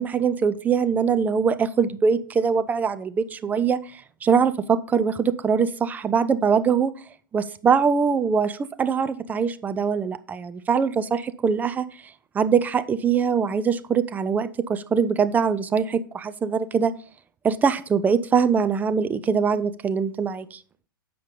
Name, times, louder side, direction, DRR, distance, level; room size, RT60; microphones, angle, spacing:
voice 1, 0.0-6.9 7.3-11.8 12.3-16.9 17.4-20.6, right 6 dB, 15° right, 13 dB, 0.4 m, -22 dB
7.2 x 5.0 x 5.2 m, 0.43 s
hypercardioid pair, 110°, 12 cm